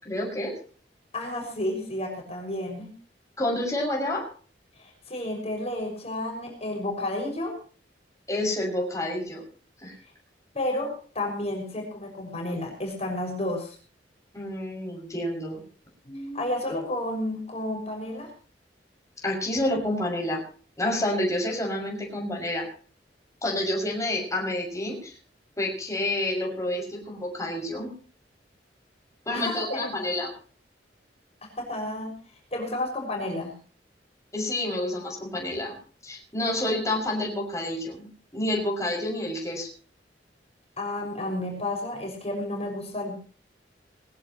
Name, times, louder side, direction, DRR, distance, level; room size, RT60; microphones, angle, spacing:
voice 1, 0.0-0.5 3.4-4.2 8.3-9.4 9.8-9.9 14.3-15.6 19.2-20.4 20.8-22.7 23.4-25.2 25.6-27.9 29.3-30.3 34.3-35.7 36.0-39.7, left 1 dB, 20° left, -1 dB, 6.4 m, -29 dB
voice 2, 1.1-2.9 4.8-7.6 10.5-13.8 16.0-18.3 29.3-30.1 31.6-32.1 32.5-33.5 40.8-43.1, left 1 dB, 35° left, 1 dB, 6.2 m, -31 dB
21.5 x 16.5 x 3.1 m, 0.40 s
head